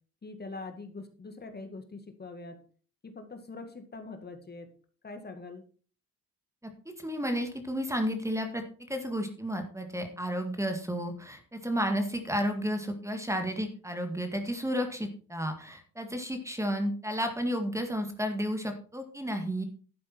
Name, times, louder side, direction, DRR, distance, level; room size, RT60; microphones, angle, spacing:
voice 1, 0.2-2.6 3.0-4.7 5.0-5.6, left 3 dB, 35° left, 6 dB, 2.1 m, -43 dB
voice 2, 6.6-19.6, equal, 10° right, 6 dB, 2.0 m, -32 dB
11.5 x 8.4 x 4.6 m, 0.40 s
cardioid pair, 90°, 30 cm